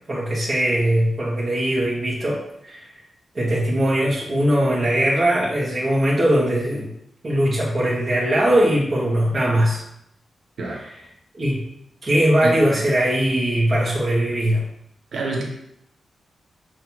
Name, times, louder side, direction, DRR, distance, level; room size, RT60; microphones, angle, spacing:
voice 1, 0.1-2.4 2.6-2.9 3.4-6.9 7.2-9.8 10.7-10.9 11.3-11.6 12.0-14.6, right 1 dB, 40° right, -6 dB, 1.7 m, -20 dB
voice 2, 15.1-15.5, right 2 dB, 75° right, -1 dB, 1.3 m, -26 dB
7.0 x 3.3 x 4.7 m, 0.76 s
wide cardioid pair, 110°, 0 cm